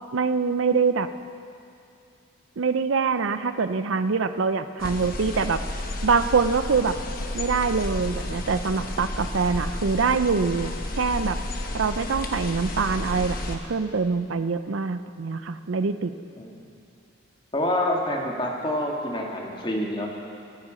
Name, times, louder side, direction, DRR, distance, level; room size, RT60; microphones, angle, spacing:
voice 1, 0.1-1.1 2.6-5.6 6.0-7.0 7.3-11.4 11.7-16.1, right 5 dB, 75° right, 11 dB, 0.5 m, -24 dB
sound 1, 4.8-13.6, left 1 dB, 45° left, 1.1 m, -32 dB
voice 2, 17.5-20.2, left 1 dB, 25° left, -1 dB, 1.7 m, -27 dB
24.0 x 8.3 x 5.0 m, 2.6 s
head